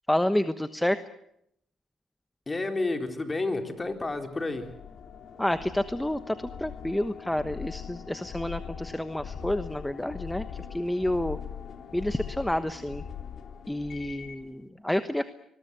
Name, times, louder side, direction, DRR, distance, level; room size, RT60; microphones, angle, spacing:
voice 1, 0.1-1.0 5.4-11.4 11.9-13.0 13.7-15.2, left 1 dB, 5° left, 10 dB, 1.1 m, -29 dB
voice 2, 2.5-4.7, left 2 dB, 25° left, 5 dB, 3.9 m, -30 dB
sound 1, 3.9-14.5, left 7 dB, 60° left, 3.4 m, -41 dB
25.0 x 21.5 x 8.2 m, 0.75 s
cardioid pair, 90°, 0 cm